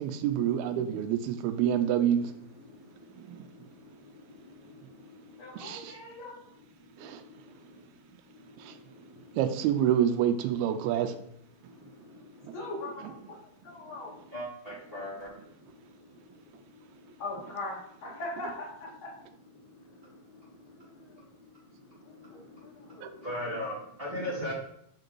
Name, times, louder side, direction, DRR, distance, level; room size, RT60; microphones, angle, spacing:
voice 1, 0.0-2.3 3.2-3.5 5.6-6.0 7.0-7.2 8.1-8.2 8.6-8.8 9.3-11.2 12.4-12.6 23.0-23.1, right 10 dB, 85° right, 8 dB, 2.6 m, -28 dB
voice 2, 2.5-5.7 6.8-9.4 11.6-12.6 13.8-17.2 19.6-24.5, left 1 dB, 20° right, -7 dB, 2.2 m, -43 dB
voice 3, 5.4-6.4 12.5-13.4 13.6-14.1 17.2-19.2 20.8-21.2 22.0-23.2, left 2 dB, 60° left, -2 dB, 1.4 m, -41 dB
5.9 x 5.2 x 4.6 m, 0.73 s
omnidirectional pair, 4.4 m